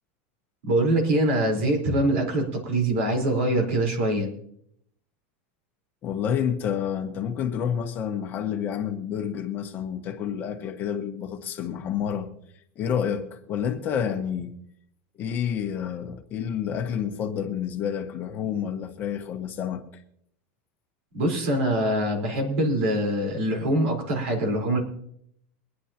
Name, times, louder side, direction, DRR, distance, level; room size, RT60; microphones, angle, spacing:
voice 1, 0.6-4.3 21.1-24.8, right 1 dB, 75° right, 4.4 m, -24 dB
voice 2, 6.0-12.3 12.7-14.5 15.2-19.8, left 8 dB, 30° left, 1.4 m, -29 dB
24.0 x 10.0 x 3.0 m
supercardioid pair, 155°, 7 cm